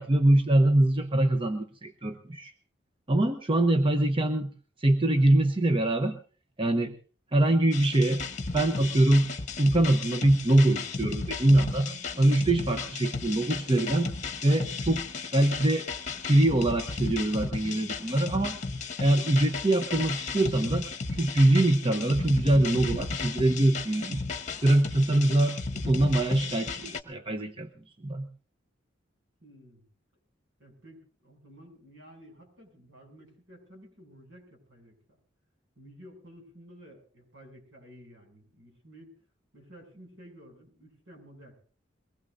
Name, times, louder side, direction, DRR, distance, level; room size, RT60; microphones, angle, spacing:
voice 1, 0.0-2.5 3.1-4.5 4.8-6.2 6.6-7.0 7.3-8.2 8.5-9.3 9.6-11.9 12.2-14.1 14.4-15.0 15.3-15.9 16.2-18.6 19.0-20.9 21.2-24.3 24.6-27.7 28.0-28.3, right 1 dB, 30° right, 7 dB, 0.9 m, -23 dB
sound 1, 7.7-27.0, left 4 dB, 40° left, 1.1 m, -35 dB
voice 2, 29.4-29.8 30.6-35.0 35.8-39.1 39.5-41.6, equal, 75° right, 2 dB, 7.3 m, -52 dB
23.0 x 19.5 x 2.6 m, 0.39 s
head